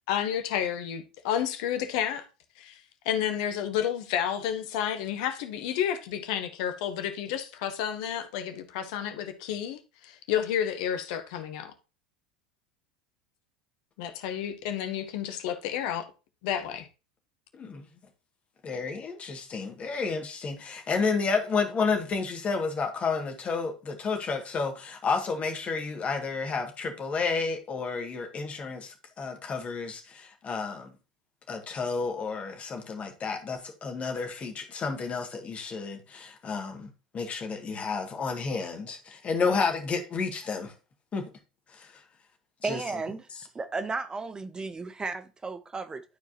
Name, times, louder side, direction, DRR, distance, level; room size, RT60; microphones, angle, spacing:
voice 1, 0.1-2.2 2.6-11.7 14.0-16.1 16.4-16.9, left 9 dB, 55° left, 1.3 m, -31 dB
voice 2, 17.5-17.9 18.6-30.9 31.5-40.7 41.1-41.3 41.7-41.9 42.6-42.8, left 4 dB, 30° left, 2.0 m, -31 dB
voice 3, 42.6-43.3 43.5-46.0, right 3 dB, 15° right, 0.7 m, -34 dB
12.0 x 4.7 x 2.9 m
figure-of-eight pair, 75°, 4 cm